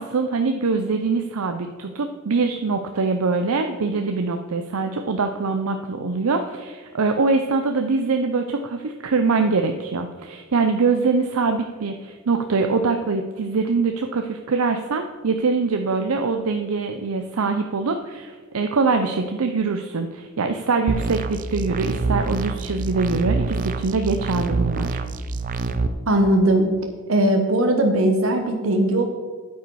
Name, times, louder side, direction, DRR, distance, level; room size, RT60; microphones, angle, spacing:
voice 1, 0.0-25.0, right 4 dB, 90° right, 6 dB, 0.6 m, -23 dB
sound 1, 20.9-25.9, right 3 dB, 40° right, 0.5 m, -26 dB
voice 2, 26.1-26.7 27.1-29.0, right 1 dB, 70° right, 4 dB, 1.0 m, -19 dB
9.5 x 8.3 x 4.7 m, 1.5 s
head